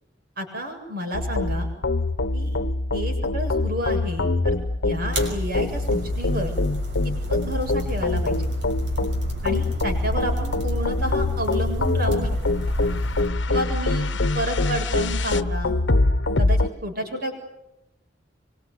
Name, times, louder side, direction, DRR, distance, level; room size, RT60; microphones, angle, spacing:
voice 1, 0.4-1.7 2.3-2.6 2.9-4.6 4.8-6.5 7.0-8.5 9.4-12.4 13.5-15.8 16.4-17.3, equal, 55° right, 4 dB, 7.6 m, -30 dB
sound 1, 1.1-16.7, left 2 dB, 85° left, 1.1 m, -24 dB
sound 2, 5.1-13.3, right 1 dB, 80° right, 6.1 m, -33 dB
25.0 x 24.5 x 9.6 m, 0.91 s
head